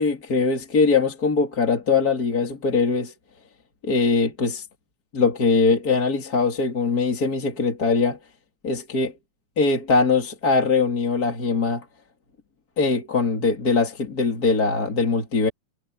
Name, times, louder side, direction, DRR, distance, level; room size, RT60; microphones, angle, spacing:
voice 1, 0.0-3.1 3.8-4.7 5.1-8.2 8.6-9.1 9.6-11.9 12.8-15.5, left 4 dB, 30° left, 2.9 m, -21 dB
omnidirectional pair, 3.4 m